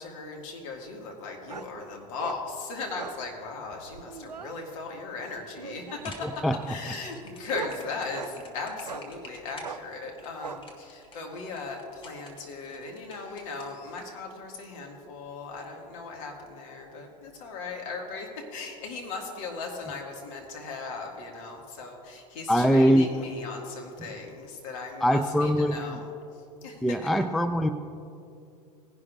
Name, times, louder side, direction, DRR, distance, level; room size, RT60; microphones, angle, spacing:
voice 1, 0.0-26.1 26.6-27.2, left 4 dB, 55° left, 1 dB, 2.1 m, -38 dB
sound 1, 1.5-1.7 2.2-2.4 2.9-3.2 3.8-4.5 5.6-6.2 6.9-8.4 8.9-9.1 9.6-9.8 10.4-10.6, right 6 dB, 90° right, 0.5 m, -40 dB
sound 2, 5.9-14.0, left 2 dB, 25° left, 1.6 m, -49 dB
voice 2, 6.2-6.6 22.5-23.1 25.0-26.0 26.8-27.7, equal, ahead, 9 dB, 0.3 m, -22 dB
18.5 x 11.0 x 2.6 m, 2.5 s
figure-of-eight pair, 85°, 20 cm